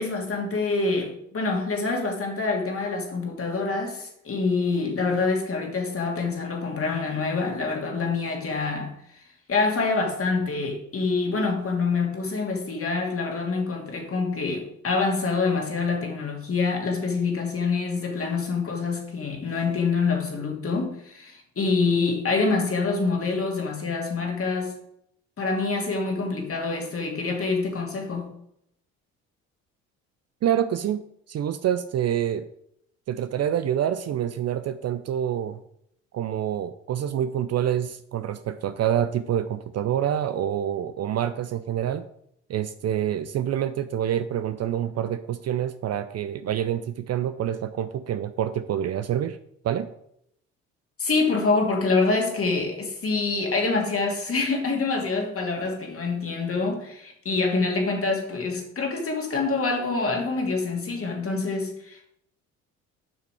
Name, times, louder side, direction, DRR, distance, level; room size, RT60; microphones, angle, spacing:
voice 1, 0.0-8.9 9.5-24.7 25.4-28.3 51.0-62.1, left 4 dB, 35° left, 2.4 m, -26 dB
voice 2, 30.4-32.4 33.1-35.6 36.1-42.0 42.5-49.4 49.6-49.9, right 10 dB, 40° right, 0.6 m, -27 dB
7.2 x 5.9 x 4.8 m
hypercardioid pair, 60°, 39 cm